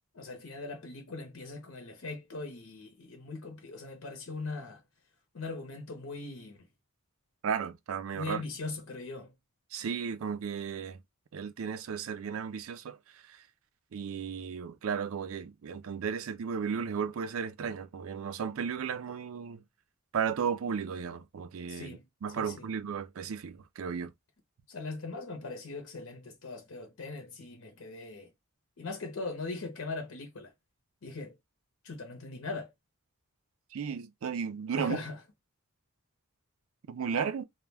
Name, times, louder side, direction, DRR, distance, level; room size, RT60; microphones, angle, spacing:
voice 1, 0.1-4.8 5.3-6.7 8.1-9.3 21.7-22.0 22.4-22.7 24.7-28.3 28.8-30.5 31.0-31.4 31.8-32.7 34.8-35.2, left 3 dB, 75° left, 0.7 m, -40 dB
voice 2, 7.4-8.4 9.7-11.0 11.3-13.0 13.3-13.4 13.9-19.6 20.1-24.1 33.7-35.0 36.9-37.4, right 6 dB, 70° right, 0.4 m, -34 dB
2.2 x 2.1 x 3.2 m
head